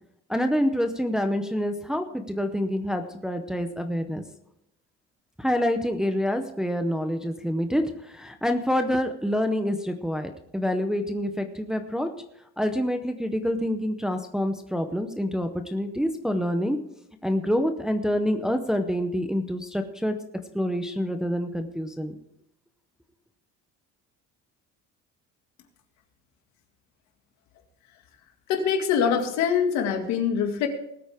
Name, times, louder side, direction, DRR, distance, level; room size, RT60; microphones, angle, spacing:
voice 1, 0.3-4.2 5.4-12.1 12.6-16.8 17.2-20.2 20.5-22.1, equal, ahead, 6 dB, 0.7 m, -27 dB
voice 2, 28.5-30.7, left 7 dB, 70° left, 5 dB, 2.1 m, -24 dB
19.5 x 8.8 x 3.5 m, 0.78 s
cardioid pair, 170°, 29 cm